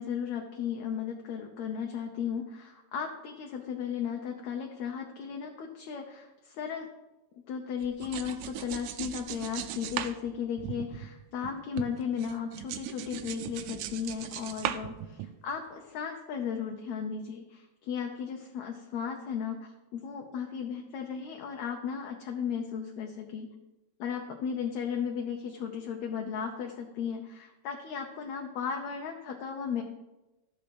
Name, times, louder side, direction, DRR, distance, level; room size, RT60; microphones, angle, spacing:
voice 1, 0.0-6.9 7.5-23.5 24.0-29.8, left 7 dB, 70° left, 2 dB, 1.9 m, -35 dB
sound 1, 7.8-11.5 11.8-15.5, right 12 dB, 85° right, 2.1 m, -38 dB
13.5 x 5.4 x 6.0 m, 1.1 s
omnidirectional pair, 3.8 m